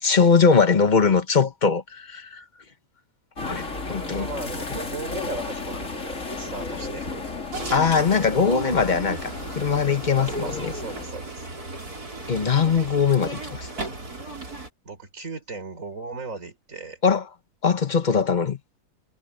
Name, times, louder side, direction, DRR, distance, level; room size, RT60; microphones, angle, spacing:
voice 1, 0.0-2.4 3.4-4.3 4.7-4.8 7.7-10.7 12.3-13.7 17.0-17.3 17.6-18.6, left 5 dB, 30° left, 1.2 m, -21 dB
sound 1, 3.4-11.0, left 3 dB, 50° left, 3.3 m, -34 dB
voice 2, 3.9-7.2 10.2-11.5 14.8-17.0, right 3 dB, 50° right, 4.1 m, -37 dB
sound 2, 7.5-14.7, right 2 dB, 65° right, 5.8 m, -35 dB
omnidirectional pair, 1.7 m